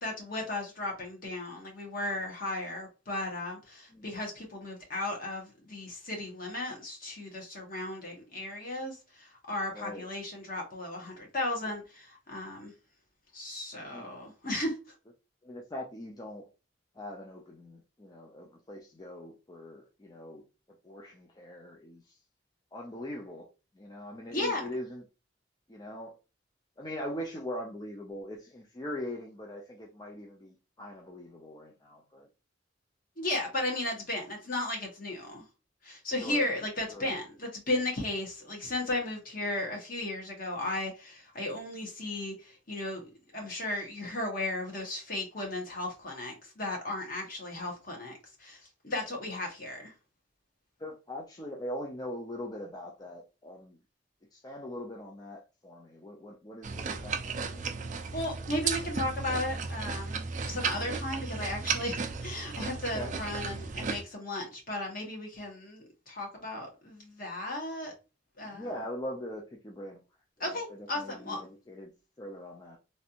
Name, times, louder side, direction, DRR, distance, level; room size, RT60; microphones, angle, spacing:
voice 1, 0.0-12.7 13.3-14.7 24.3-24.7 33.2-35.4 35.8-49.9 58.1-67.9 68.4-68.7 70.4-71.4, left 1 dB, 50° left, 1.3 m, -35 dB
voice 2, 9.7-10.1 13.9-14.1 15.4-16.5 16.9-20.4 20.7-22.2 22.7-23.5 23.7-25.0 25.7-26.2 26.8-32.3 36.2-36.5 36.9-37.2 50.8-53.8 54.3-57.6 62.9-63.1 68.4-70.0 70.5-71.9 72.2-72.8, left 1 dB, 20° left, 0.5 m, -41 dB
sound 1, 56.6-64.0, right 5 dB, 40° right, 0.4 m, -34 dB
3.2 x 2.5 x 2.8 m
head